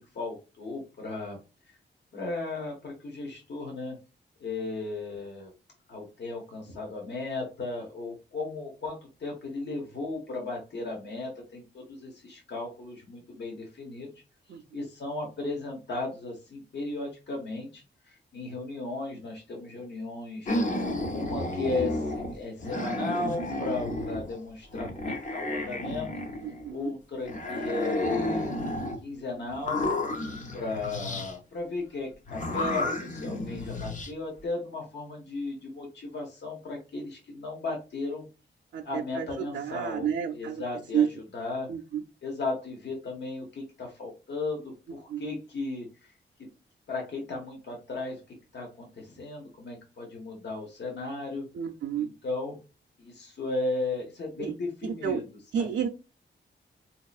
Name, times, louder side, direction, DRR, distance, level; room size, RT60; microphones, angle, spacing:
voice 1, 0.1-1.4 2.1-4.0 4.4-5.5 5.9-14.1 14.7-20.6 21.1-26.1 26.7-28.5 29.0-29.9 30.5-38.3 38.8-41.7 42.2-46.1 46.9-48.2 48.5-51.4 52.0-52.6 53.0-55.2 55.6-55.7, left 3 dB, 65° left, 0 dB, 1.0 m, -35 dB
voice 2, 14.5-14.8 26.4-26.9 38.7-40.6 40.9-41.1 41.7-42.0 45.1-45.2 51.5-52.1 54.4-54.5 54.8-55.2 55.5-55.9, right 8 dB, 80° right, 2 dB, 0.4 m, -30 dB
sound 1, 20.5-22.3 22.6-24.4 24.7-26.7 27.3-29.0 29.5-31.3 32.3-34.1, left 1 dB, 40° left, 0.6 m, -31 dB
4.0 x 2.9 x 2.4 m, 0.30 s
wide cardioid pair, 145°, 19 cm